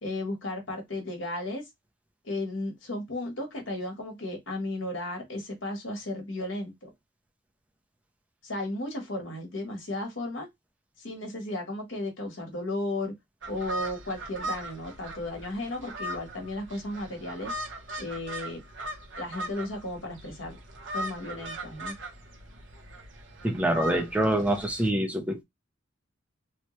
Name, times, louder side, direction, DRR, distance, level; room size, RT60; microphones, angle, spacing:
voice 1, 0.0-1.7 2.2-6.9 8.4-10.5 11.0-13.1 13.5-17.5 18.0-18.6 19.2-20.6 20.9-21.9, left 1 dB, 70° left, 1.2 m, -34 dB
sound 1, 13.4-24.9, right 1 dB, 65° right, 0.9 m, -39 dB
voice 2, 23.4-25.4, right 1 dB, 5° right, 0.6 m, -25 dB
3.1 x 2.2 x 3.0 m
head